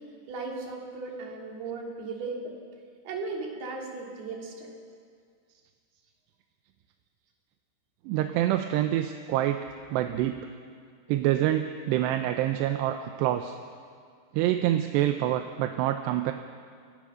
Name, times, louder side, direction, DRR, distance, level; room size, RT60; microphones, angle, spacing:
voice 1, 0.3-2.5 3.0-4.7 10.2-10.3, right 3 dB, 70° right, -1 dB, 5.1 m, -36 dB
voice 2, 8.1-10.4 11.1-13.6 14.3-16.3, right 12 dB, 90° right, 6 dB, 2.9 m, -26 dB
29.0 x 17.5 x 6.4 m, 2.1 s
omnidirectional pair, 4.8 m